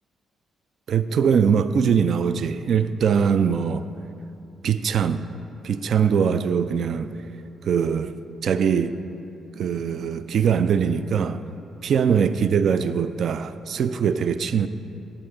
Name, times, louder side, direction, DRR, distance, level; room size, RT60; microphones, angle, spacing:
voice 1, 0.9-3.9 4.6-5.3 5.6-7.1 7.6-8.1 8.4-8.9 9.5-11.4 11.8-14.7, right 7 dB, 60° right, 12 dB, 0.3 m, -22 dB
11.0 x 8.0 x 3.6 m, 2.8 s
hypercardioid pair, 40°, 0 cm